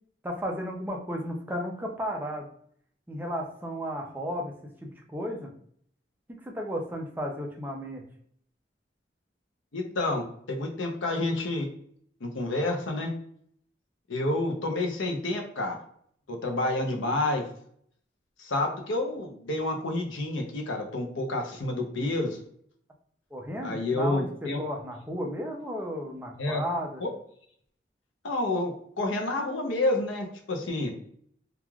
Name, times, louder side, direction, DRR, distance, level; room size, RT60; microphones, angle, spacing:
voice 1, 0.2-2.5 3.1-4.5 4.8-5.5 6.3-8.0 23.3-27.0, equal, 10° right, 0 dB, 0.4 m, -34 dB
voice 2, 9.7-11.7 12.2-13.1 14.1-15.8 16.3-17.4 18.4-22.4 23.6-24.6 26.4-26.6 27.0-27.1 28.2-28.7 29.0-30.9, left 2 dB, 85° left, 3 dB, 0.6 m, -29 dB
3.1 x 2.4 x 2.2 m, 0.64 s
head